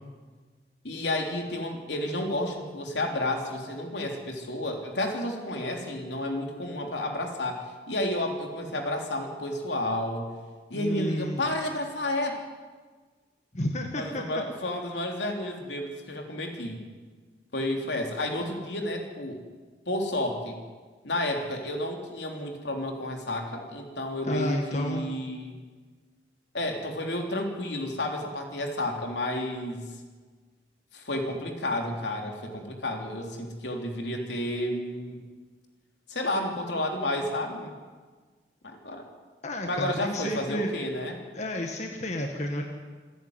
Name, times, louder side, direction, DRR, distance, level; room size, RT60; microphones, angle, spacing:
voice 1, 0.8-10.3 10.7-12.4 13.9-16.8 17.5-19.4 19.9-20.6 21.0-25.5 26.5-29.9 30.9-35.2 36.1-37.7 38.6-39.1 39.6-41.2, left 1 dB, 80° left, 3 dB, 3.4 m, -31 dB
voice 2, 10.7-11.4 13.5-14.2 24.2-25.0 39.4-40.7 41.3-42.6, left 1 dB, 40° left, 2 dB, 1.7 m, -31 dB
27.0 x 10.5 x 9.6 m, 1.4 s
head